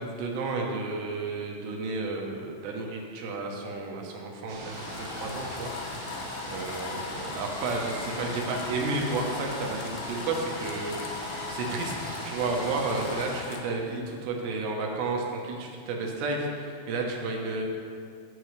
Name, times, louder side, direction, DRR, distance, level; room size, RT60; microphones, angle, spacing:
voice 1, 0.0-5.7 6.5-17.6, right 3 dB, 85° right, 1 dB, 3.2 m, -32 dB
sound 1, 4.5-13.4, right 2 dB, 70° right, 3.1 m, -41 dB
sound 2, 4.7-13.6, left 4 dB, 75° left, 2.6 m, -38 dB
15.0 x 5.6 x 3.2 m, 2.2 s
omnidirectional pair, 4.7 m